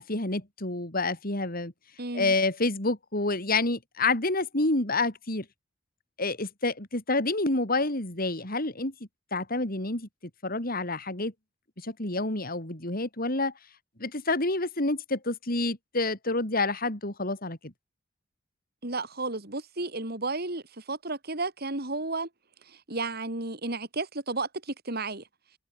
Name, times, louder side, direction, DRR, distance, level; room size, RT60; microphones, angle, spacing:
voice 1, 0.0-1.7 2.1-5.4 6.2-8.9 9.3-10.1 10.4-11.3 11.8-13.5 14.0-17.7, left 2 dB, 50° left, 4.7 m, -28 dB
voice 2, 2.0-2.3 18.8-22.3 22.6-25.2, right 3 dB, 55° right, 3.9 m, -33 dB
head